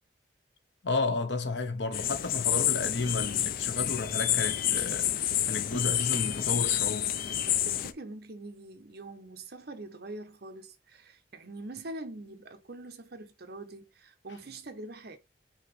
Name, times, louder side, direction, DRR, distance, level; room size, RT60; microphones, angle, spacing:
voice 1, 0.8-5.1 5.5-7.1, left 3 dB, 85° left, 1.0 m, -32 dB
sound 1, 1.9-7.9, left 11 dB, 55° left, 0.4 m, -29 dB
voice 2, 7.5-15.2, right 2 dB, 60° right, 0.9 m, -44 dB
5.6 x 2.9 x 3.1 m
head